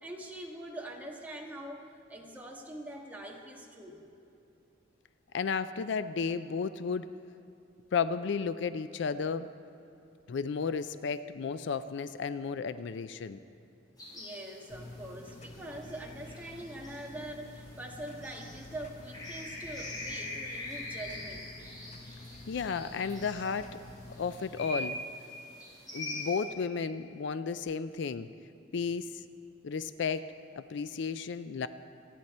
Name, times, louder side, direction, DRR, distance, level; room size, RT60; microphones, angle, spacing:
voice 1, 0.0-3.9 14.1-21.5, right 1 dB, 10° right, -1 dB, 1.5 m, -43 dB
voice 2, 5.3-7.1 7.9-9.5 10.3-13.4 22.5-23.8 24.2-25.0 25.9-28.3 28.7-29.2 29.6-31.7, left 5 dB, 65° left, 13 dB, 0.4 m, -33 dB
sound 1, 14.0-26.4, left 2 dB, 20° left, 4.1 m, -44 dB
sound 2, 14.7-24.4, left 2 dB, 35° left, 0.8 m, -49 dB
26.5 x 9.3 x 4.3 m, 2.7 s
head